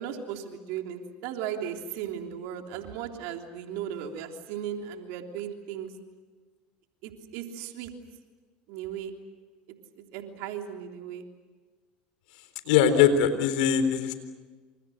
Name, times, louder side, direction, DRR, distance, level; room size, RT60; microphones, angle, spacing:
voice 1, 0.0-5.9 7.0-7.9 8.7-9.1 10.1-11.2, right 9 dB, 70° right, 4 dB, 3.3 m, -36 dB
voice 2, 12.6-14.1, left 8 dB, 80° left, 10 dB, 4.0 m, -21 dB
28.5 x 27.5 x 6.5 m, 1.4 s
hypercardioid pair, 85°, 5 cm